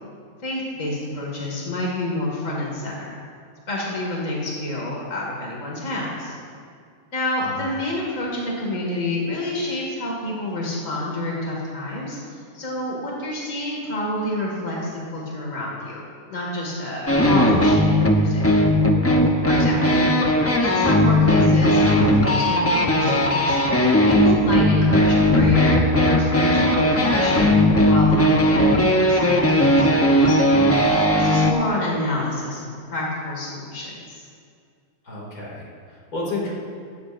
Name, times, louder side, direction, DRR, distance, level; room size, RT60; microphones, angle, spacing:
voice 1, 0.4-3.1 3.7-6.4 7.1-12.2 12.5-16.0 16.3-18.6 19.5-20.0 20.6-23.6 24.1-30.5 31.0-34.2, left 1 dB, 60° left, -3 dB, 2.5 m, -28 dB
sound 1, 17.1-31.5, left 1 dB, 15° left, 0.6 m, -17 dB
voice 2, 35.0-36.5, left 2 dB, 85° left, -4 dB, 3.1 m, -31 dB
15.0 x 15.0 x 2.6 m, 2.2 s
omnidirectional pair, 1.5 m